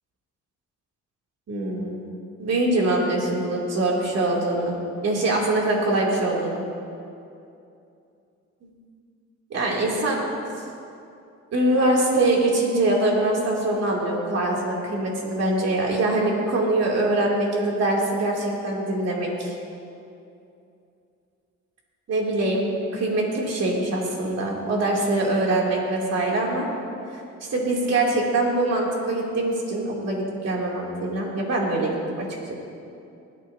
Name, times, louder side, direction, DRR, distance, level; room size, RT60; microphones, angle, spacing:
voice 1, 1.5-2.0 2.4-4.7 5.0-6.6 9.5-10.2 11.5-19.5 22.1-26.7 27.1-27.2 27.5-32.5, right 2 dB, 55° right, -3 dB, 3.1 m, -23 dB
19.5 x 13.5 x 2.9 m, 2.6 s
cardioid pair, 90°, 30 cm